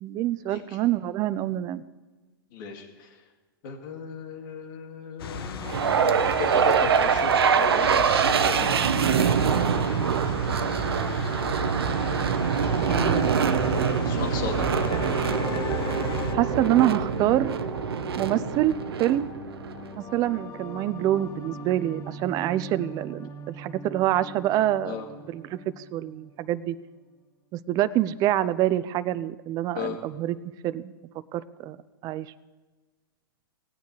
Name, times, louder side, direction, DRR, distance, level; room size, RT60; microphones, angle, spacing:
voice 1, 0.0-1.8 12.9-13.5 16.3-17.5 18.2-19.3 19.9-25.0 25.3-26.8 27.7-30.4 30.6-30.9 31.3-31.8 32.0-32.3, right 13 dB, 30° right, 15 dB, 0.4 m, -26 dB
voice 2, 2.5-3.1 3.6-6.0 6.4-8.8 9.1-9.4 14.0-15.0 24.8-25.1 29.7-30.0, left 7 dB, 55° left, 2 dB, 2.2 m, -36 dB
sound 1, 5.2-16.4, left 6 dB, 75° left, 1.0 m, -36 dB
sound 2, 5.7-19.9, right 7 dB, 85° right, 0.7 m, -24 dB
sound 3, 12.8-26.7, left 3 dB, 30° left, 1.8 m, -39 dB
17.5 x 9.2 x 3.2 m, 1.3 s
hypercardioid pair, 125°, 13 cm